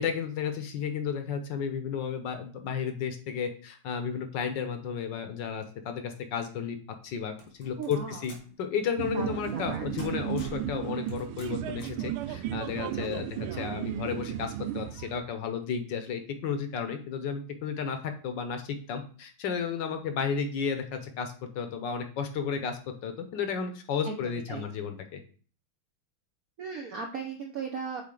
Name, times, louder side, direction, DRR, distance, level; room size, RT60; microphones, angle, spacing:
voice 1, 0.0-6.8 7.0-25.2, left 6 dB, 65° left, 7 dB, 1.3 m, -33 dB
sound 1, 7.4-8.5 9.5-9.7 10.0-10.7 11.1-12.0, left 2 dB, 90° left, 2.9 m, -49 dB
voice 2, 7.8-8.2 9.1-9.9 12.8-13.3 24.0-24.7 26.6-28.0, right 5 dB, 70° right, 2 dB, 0.8 m, -38 dB
sound 2, 9.0-15.2, right 11 dB, 85° right, 1.4 m, -34 dB
7.4 x 4.1 x 3.8 m, 0.42 s
omnidirectional pair, 2.3 m